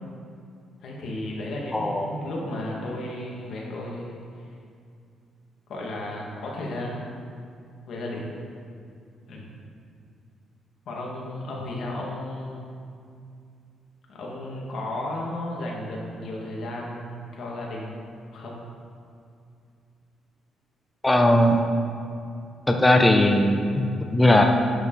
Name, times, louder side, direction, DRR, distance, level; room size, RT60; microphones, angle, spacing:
voice 1, 0.8-4.2 5.7-7.2 7.9-8.3 9.3-9.5 10.9-12.8 14.1-18.6, left 1 dB, 65° left, -3 dB, 2.3 m, -34 dB
voice 2, 1.7-2.1 21.0-21.6 22.7-24.5, left 1 dB, 15° left, 3 dB, 0.8 m, -19 dB
11.0 x 6.7 x 4.2 m, 2.4 s
cardioid pair, 90°, 0 cm